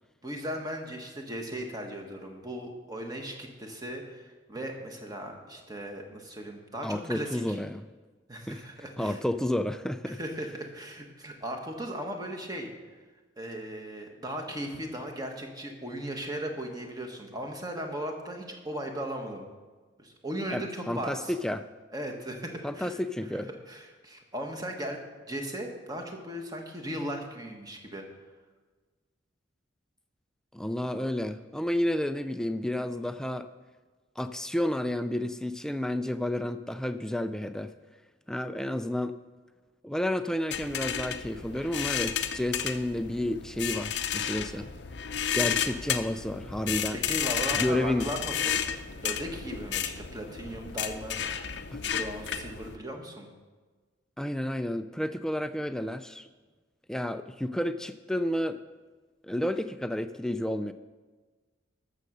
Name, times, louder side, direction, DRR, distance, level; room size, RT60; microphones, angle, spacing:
voice 1, 0.2-7.6 8.3-9.2 10.1-12.7 13.4-19.5 20.0-21.3 21.9-23.0 23.7-25.0 25.3-28.0 46.9-48.6 49.0-51.4 51.8-53.3, equal, 20° right, 3 dB, 1.4 m, -37 dB
voice 2, 6.8-7.9 8.5-8.7 9.0-10.2 20.5-21.6 22.6-23.5 30.5-33.5 34.2-37.7 38.3-39.2 39.8-44.7 45.3-47.0 47.5-48.0 51.7-51.8 54.2-56.3 56.9-58.6 59.2-60.7, left 1 dB, 5° left, 10 dB, 0.3 m, -31 dB
sound 1, 40.5-52.8, left 8 dB, 60° left, 0.6 m, -32 dB
13.0 x 6.7 x 6.3 m, 1.4 s
head